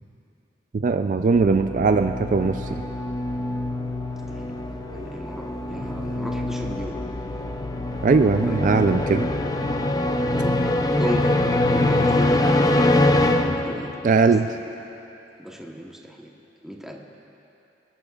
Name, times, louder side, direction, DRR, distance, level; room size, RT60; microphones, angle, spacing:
voice 1, 0.8-2.7 8.0-9.3 14.0-14.5, right 4 dB, 45° right, 7 dB, 0.3 m, -19 dB
sound 1, 1.3-10.0, equal, 60° right, 1.4 m, -41 dB
sound 2, 1.5-14.2, left 1 dB, 20° left, 0.5 m, -24 dB
voice 2, 4.9-7.0 8.4-8.6 10.3-10.6 11.0-11.4 11.7-13.0 13.5-14.7 15.4-16.3 16.6-17.0, equal, 5° right, -1 dB, 1.0 m, -36 dB
27.5 x 12.0 x 2.4 m, 2.9 s
head